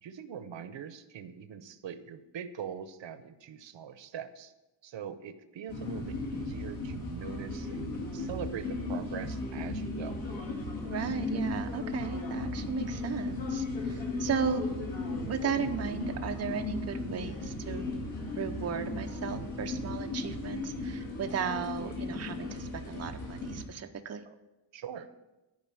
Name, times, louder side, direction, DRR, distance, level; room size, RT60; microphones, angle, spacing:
voice 1, 0.0-4.5 4.8-7.9 8.1-10.2 24.3-24.4 24.7-25.1, right 8 dB, 80° right, 12 dB, 0.7 m, -42 dB
sound 1, 5.7-23.6, left 2 dB, 85° left, 2.4 m, -36 dB
voice 2, 10.8-14.7 15.3-18.0 18.4-24.3, right 6 dB, 35° right, 6 dB, 0.5 m, -35 dB
10.5 x 5.1 x 6.9 m, 1.0 s
wide cardioid pair, 165°, 44 cm